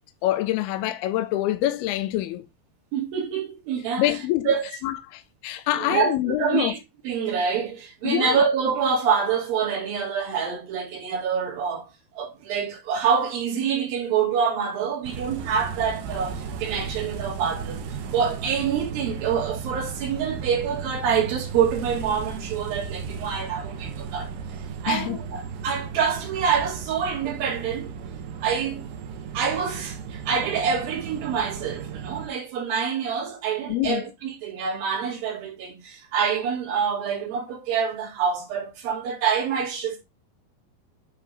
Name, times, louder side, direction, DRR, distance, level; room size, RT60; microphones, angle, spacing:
voice 1, 0.2-2.4 4.0-4.5 4.8-6.7 8.0-8.4 24.9-25.2 33.7-34.0, left 14 dB, 85° left, 2.6 m, -25 dB
voice 2, 2.9-4.1 4.5-4.7 5.8-6.8 7.0-17.8 18.1-24.3 24.8-27.9 28.4-28.9 29.3-40.0, right 6 dB, 65° right, 3.8 m, -26 dB
sound 1, 15.0-32.3, right 6 dB, 90° right, 3.3 m, -35 dB
9.8 x 3.7 x 4.6 m
omnidirectional pair, 4.5 m